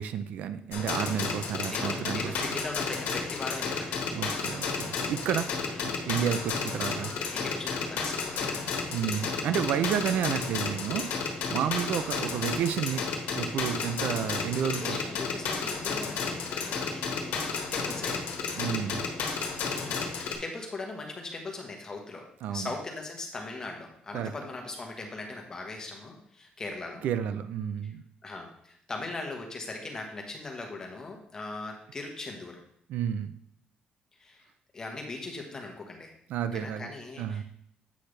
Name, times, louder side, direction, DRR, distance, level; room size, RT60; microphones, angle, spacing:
voice 1, 0.0-2.3 4.1-5.5 6.1-7.1 8.9-13.0 13.3-15.0 18.5-19.1 22.4-22.7 24.1-24.3 27.0-28.0 32.9-33.3 36.3-36.9 37.2-37.4, right 9 dB, 65° right, 11 dB, 0.5 m, -31 dB
sound 1, 0.7-20.3, left 5 dB, 80° left, 1.4 m, -32 dB
voice 2, 1.6-4.0 5.6-6.0 6.8-8.8 9.5-9.8 11.5-11.7 14.6-18.2 19.8-27.0 27.8-27.9 28.2-32.6 34.2-34.5 34.7-36.1 36.5-37.4, left 3 dB, 20° left, 2 dB, 1.2 m, -40 dB
8.4 x 5.8 x 3.3 m, 0.69 s
cardioid pair, 160°, 3 cm